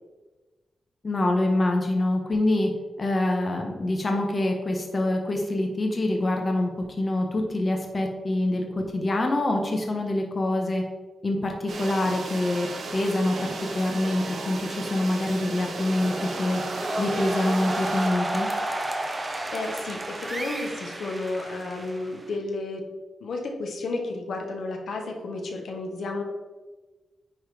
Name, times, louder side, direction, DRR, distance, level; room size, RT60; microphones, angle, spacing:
voice 1, 1.0-2.7 3.0-10.8 11.2-16.6 17.0-18.5, left 1 dB, 35° left, 2 dB, 1.1 m, -25 dB
printing room cuba, 11.7-18.1, right 3 dB, 65° right, 1.2 m, -35 dB
sound 1, 15.5-22.4, right 1 dB, 25° right, 1.0 m, -32 dB
voice 2, 19.1-22.8 23.2-26.2, left 2 dB, 75° left, 2 dB, 1.4 m, -32 dB
9.6 x 4.0 x 5.0 m, 1.2 s
wide cardioid pair, 125°, 0 cm